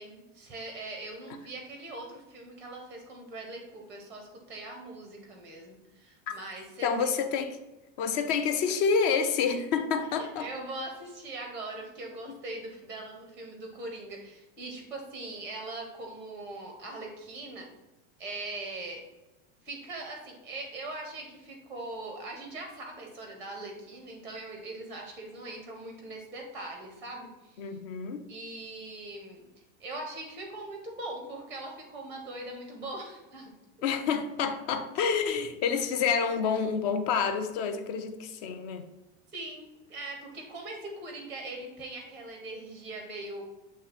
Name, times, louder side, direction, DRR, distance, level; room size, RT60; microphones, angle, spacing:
voice 1, 0.0-7.1 9.5-9.6 10.2-17.7 18.2-19.0 19.6-27.8 28.3-29.4 29.8-33.5 39.3-43.4, right 2 dB, 5° right, 2 dB, 0.5 m, -41 dB
voice 2, 6.8-7.6 8.0-10.5 12.3-12.4 27.6-28.3 33.8-38.9, left 6 dB, 40° left, 8 dB, 0.5 m, -28 dB
7.4 x 3.1 x 4.1 m, 1.1 s
supercardioid pair, 175°, 33 cm